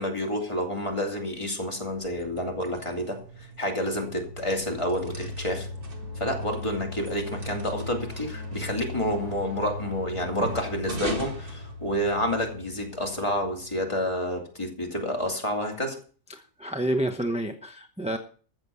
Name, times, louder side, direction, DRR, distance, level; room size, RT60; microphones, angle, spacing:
voice 1, 0.0-5.7 6.2-16.0, equal, 20° left, 1 dB, 2.7 m, -29 dB
sound 1, 1.9-12.4, right 2 dB, 35° right, 1.9 m, -41 dB
sound 2, 3.7-14.4, left 2 dB, 80° right, 3.7 m, -39 dB
voice 2, 16.3-18.2, right 1 dB, 5° right, 5 dB, 0.7 m, -29 dB
14.5 x 7.4 x 7.0 m, 0.42 s
omnidirectional pair, 1.7 m